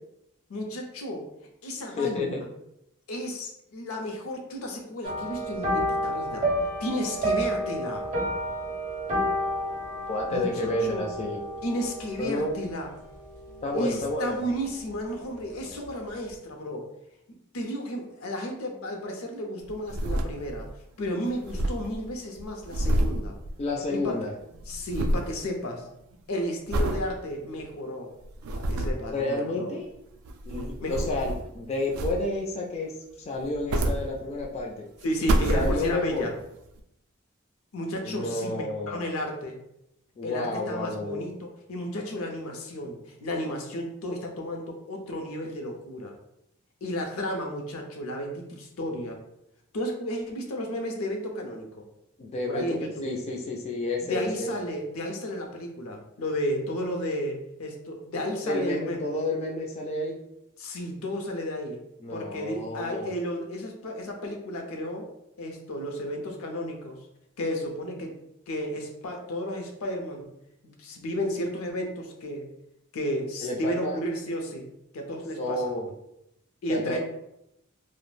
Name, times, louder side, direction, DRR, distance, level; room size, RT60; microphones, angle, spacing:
voice 1, 0.5-1.3 1.6-2.3 3.1-6.5 6.8-8.0 10.3-11.1 11.6-12.9 13.7-16.8 17.5-20.7 21.0-23.3 23.9-24.1 24.7-25.8 26.3-28.1 28.5-29.7 30.8-31.1 35.0-36.3 37.7-39.6 40.2-46.1 46.8-49.2 49.7-51.8 52.5-53.1 54.0-59.0 60.6-61.8 62.1-65.1 65.4-67.0 67.4-68.1 68.5-70.3 70.6-72.5 72.9-74.7 74.9-75.7 76.6-77.0, equal, 80° left, 2 dB, 0.5 m, -33 dB
voice 2, 2.0-2.4 10.1-11.4 12.2-12.7 13.6-14.4 23.6-24.3 29.0-29.9 30.5-34.9 35.5-36.3 38.0-39.0 40.2-41.3 52.2-54.5 58.5-60.2 62.0-63.1 73.4-74.0 75.4-75.9 76.7-77.0, left 2 dB, 30° left, -1 dB, 0.3 m, -30 dB
sound 1, 5.0-14.6 14.9-15.3 15.6-15.7, equal, 35° right, 0.5 m, -31 dB
sound 2, 19.6-20.8 21.0-21.1 21.3-24.1 24.4-25.4 25.8-26.1 26.7-27.1 27.6-27.7 28.2-29.1 30.1-31.5 31.9-32.5 33.3-34.6 35.0-36.2 36.8-36.9, right 1 dB, 85° right, 0.3 m, -28 dB
2.2 x 2.0 x 3.1 m, 0.81 s
head